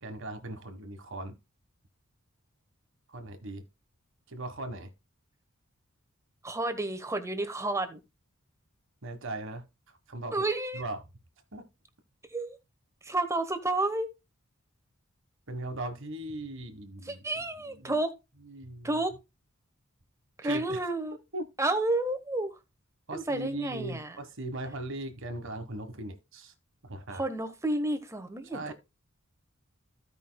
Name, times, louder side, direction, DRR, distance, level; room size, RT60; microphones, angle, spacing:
voice 1, 0.0-1.3 3.1-3.6 4.3-4.9 9.0-9.6 10.1-10.4 10.7-11.0 11.5-11.6 15.5-17.3 17.7-18.0 18.4-19.0 20.4-20.8 21.3-21.4 23.1-26.5 26.8-27.2 28.5-28.7, right 2 dB, 65° right, 1.4 m, -38 dB
voice 2, 6.4-8.0 10.3-10.8 12.3-12.6 13.0-14.1 17.0-18.2 18.8-19.1 20.4-21.2 21.6-22.6 23.1-24.2 27.1-28.6, right 2 dB, 15° right, 1.1 m, -30 dB
15.5 x 5.2 x 2.2 m
head